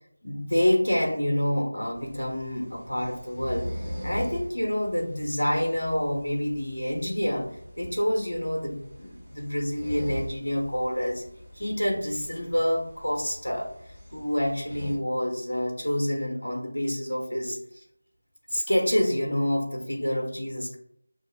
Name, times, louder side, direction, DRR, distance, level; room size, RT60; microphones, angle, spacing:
voice 1, 0.2-7.5 7.8-11.2 11.5-17.8 18.5-20.8, equal, 75° left, 1 dB, 1.1 m, -27 dB
sound 1, 1.9-15.0, equal, 5° right, 1.2 m, -41 dB
6.3 x 2.6 x 2.4 m, 0.70 s
figure-of-eight pair, 170°, 0 cm